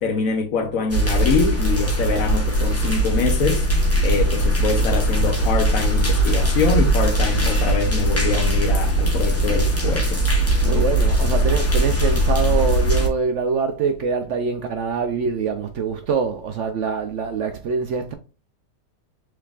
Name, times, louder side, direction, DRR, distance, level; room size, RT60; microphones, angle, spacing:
voice 1, 0.0-3.7 4.0-10.3, left 5 dB, 60° left, 1.0 m, -24 dB
sound 1, 0.9-13.1, right 1 dB, 15° left, 0.5 m, -20 dB
voice 2, 10.6-18.1, right 5 dB, 70° right, 0.7 m, -24 dB
6.3 x 3.3 x 2.4 m
omnidirectional pair, 1.9 m